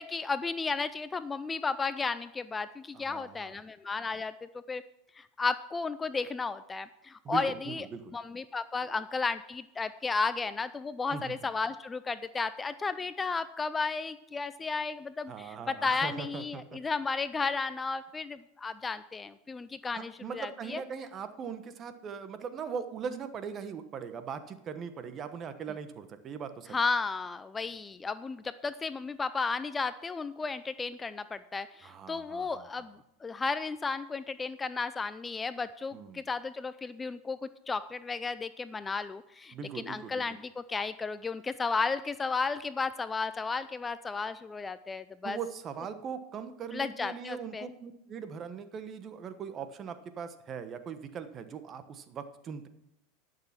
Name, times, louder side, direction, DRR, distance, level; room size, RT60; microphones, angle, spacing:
voice 1, 0.0-4.8 5.2-7.9 8.1-20.8 26.7-45.4 46.7-47.7, left 4 dB, 20° left, 14 dB, 0.4 m, -33 dB
voice 2, 2.9-3.5 7.2-8.1 8.8-8.9 11.1-11.3 15.3-16.8 19.9-26.7 31.8-32.7 35.9-36.2 39.5-40.3 45.2-52.7, right 7 dB, 35° right, 10 dB, 1.1 m, -40 dB
11.5 x 6.8 x 5.8 m, 0.84 s
hypercardioid pair, 105°, 0 cm